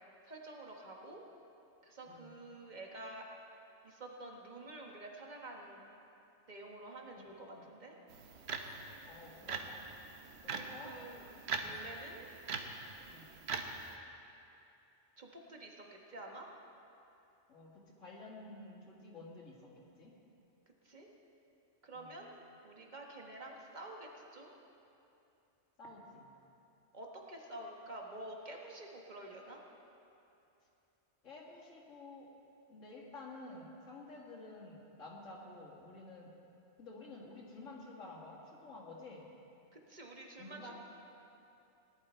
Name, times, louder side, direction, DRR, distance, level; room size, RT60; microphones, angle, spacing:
voice 1, 0.2-1.2 1.8-3.2 3.8-5.8 6.5-7.9 10.5-11.3 11.6-12.3 15.2-16.5 20.8-21.1 21.8-24.5 26.9-29.6 39.7-40.7, right 2 dB, 35° right, 0 dB, 1.5 m, -49 dB
sound 1, 8.1-13.9, right 4 dB, 60° right, 1.1 m, -43 dB
voice 2, 9.0-9.8 10.4-11.0 11.5-11.8 13.1-13.3 17.5-19.6 20.0-20.1 21.9-22.1 25.8-26.3 31.2-32.3 32.7-36.3 36.8-39.3 40.4-40.7, left 2 dB, 85° left, -3 dB, 2.3 m, -51 dB
18.0 x 11.0 x 4.4 m, 2.8 s
omnidirectional pair, 1.3 m